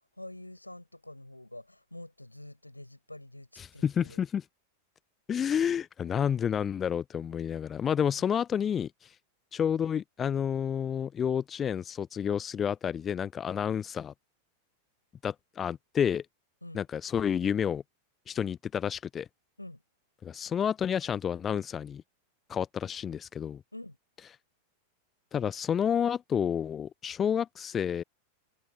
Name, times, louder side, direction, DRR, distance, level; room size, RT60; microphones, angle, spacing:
voice 1, 0.2-4.2 8.1-8.2 16.6-16.8 19.6-19.8 23.7-24.0, left 1 dB, 85° left, 5.1 m, -46 dB
voice 2, 3.6-4.4 5.3-9.2 9.5-14.1 15.2-16.3 16.7-17.8 18.3-19.3 20.2-22.0 22.5-23.6 25.3-28.0, left 8 dB, 25° left, 0.5 m, -30 dB
figure-of-eight pair, 90°, 0 cm